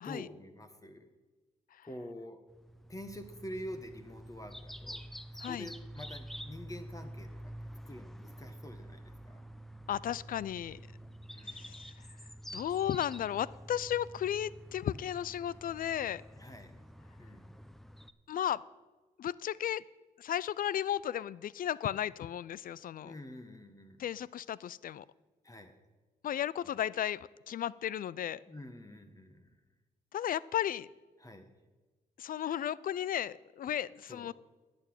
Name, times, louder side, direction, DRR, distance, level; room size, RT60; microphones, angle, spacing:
voice 1, 0.0-1.1 1.8-2.4 2.9-5.0 5.5-7.5 7.9-9.4 11.3-11.8 16.3-16.7 17.2-17.6 23.0-24.0 25.4-25.7 26.6-26.8 28.5-29.5 31.2-31.5 34.1-34.3, left 1 dB, 20° left, 6 dB, 1.3 m, -47 dB
sound 1, 2.5-18.1, equal, ahead, 0.7 m, -48 dB
voice 2, 9.9-10.8 11.5-11.9 12.5-16.2 18.3-18.6 19.2-19.8 20.2-23.1 24.0-25.0 26.2-28.4 30.1-30.9 32.2-34.3, left 10 dB, 60° left, 21 dB, 0.4 m, -34 dB
11.0 x 6.1 x 8.7 m, 1.3 s
supercardioid pair, 55°, 16 cm